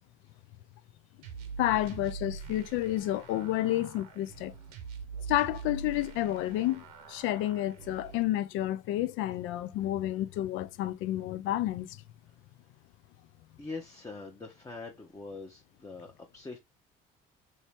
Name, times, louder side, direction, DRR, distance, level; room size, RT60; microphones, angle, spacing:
sound 1, 1.2-8.2, right 5 dB, 90° right, 0.8 m, -44 dB
voice 1, 1.6-4.5 5.3-12.0, left 14 dB, 70° left, 0.5 m, -30 dB
voice 2, 13.6-16.6, left 3 dB, 15° left, 0.8 m, -43 dB
3.1 x 2.7 x 3.3 m
supercardioid pair, 75°, 21 cm